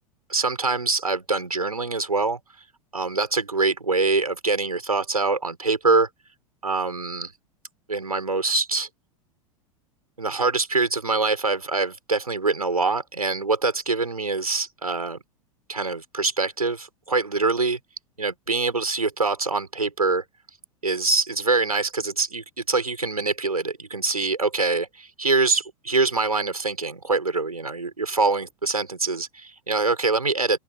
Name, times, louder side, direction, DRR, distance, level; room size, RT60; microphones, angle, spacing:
voice 1, 0.3-2.4 2.9-6.1 6.6-7.3 7.9-8.9 10.2-15.2 15.7-17.8 18.2-20.2 20.8-30.6, right 3 dB, 80° right, 6.6 m, -24 dB
open air
figure-of-eight pair, 90°, 19 cm